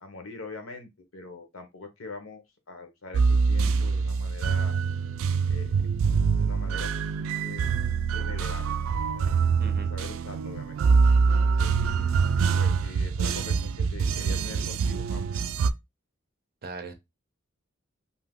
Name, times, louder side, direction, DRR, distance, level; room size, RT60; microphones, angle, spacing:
voice 1, 0.0-4.8 5.5-5.8 6.3-7.7 8.1-8.7 9.1-9.3 9.9-10.8 11.4-11.7 12.6-15.2, left 2 dB, 80° left, 0.9 m, -43 dB
sound 1, 3.1-15.7, right 5 dB, 85° right, 0.3 m, -25 dB
voice 2, 9.6-9.9 11.8-12.1 16.6-16.9, right 3 dB, 50° right, 0.6 m, -40 dB
2.7 x 2.3 x 3.4 m
head